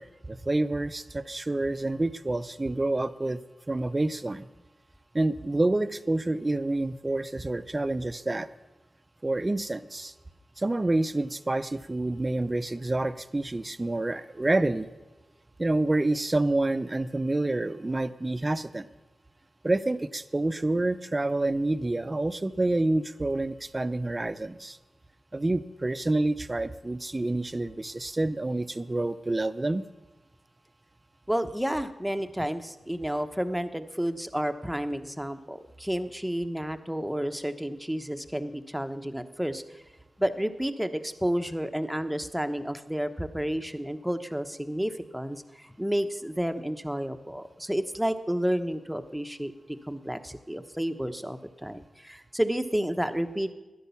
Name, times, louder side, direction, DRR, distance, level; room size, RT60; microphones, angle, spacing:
voice 1, 0.0-3.4 3.7-4.5 5.1-8.5 9.2-10.1 10.6-14.9 15.6-18.9 19.6-24.8 25.3-29.8, right 2 dB, 30° right, 13 dB, 0.7 m, -28 dB
voice 2, 31.3-39.8 40.2-49.5 49.9-53.5, equal, 5° right, 8 dB, 1.0 m, -31 dB
13.0 x 10.5 x 7.0 m, 1.1 s
cardioid pair, 50°, 0 cm